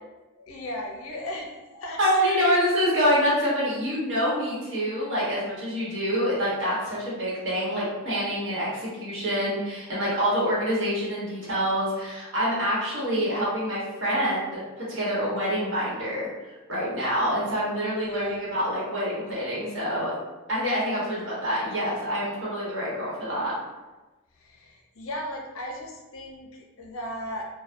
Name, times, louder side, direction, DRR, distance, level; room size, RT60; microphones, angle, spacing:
voice 1, 0.4-2.6 18.0-18.5 24.4-27.5, left 1 dB, 75° left, 0 dB, 0.5 m, -36 dB
voice 2, 2.0-20.1 20.5-23.5, equal, 65° right, -8 dB, 1.1 m, -26 dB
2.6 x 2.2 x 2.2 m, 1.1 s
head